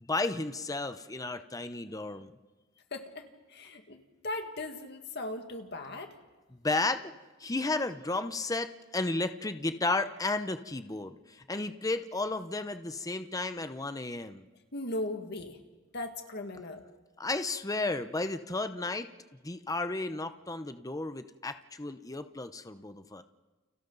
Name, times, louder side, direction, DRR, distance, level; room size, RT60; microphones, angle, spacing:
voice 1, 0.1-2.4 6.6-7.1 7.4-14.5 17.2-19.1 19.4-23.2, left 2 dB, 15° left, 9 dB, 0.8 m, -33 dB
voice 2, 2.9-3.2 3.5-6.1 14.7-15.6 15.9-16.8, left 2 dB, 55° left, 4 dB, 2.0 m, -38 dB
30.0 x 29.5 x 4.0 m, 1.2 s
head